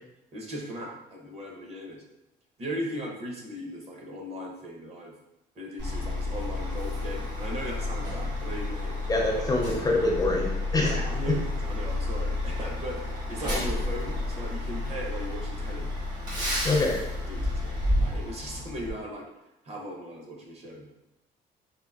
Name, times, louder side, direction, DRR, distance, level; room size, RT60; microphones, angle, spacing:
voice 1, 0.3-2.0 2.6-5.1 5.6-9.1 9.4-9.5 10.8-15.9 16.3-16.8 17.3-19.3 19.6-20.9, equal, 35° right, 0 dB, 0.7 m, -38 dB
Truck, 5.8-18.9, left 2 dB, 55° right, 1.4 m, -31 dB
voice 2, 9.1-11.0 16.6-17.0, left 2 dB, 20° left, 0 dB, 0.4 m, -25 dB
3.7 x 2.0 x 2.3 m, 0.89 s
cardioid pair, 110°, 17 cm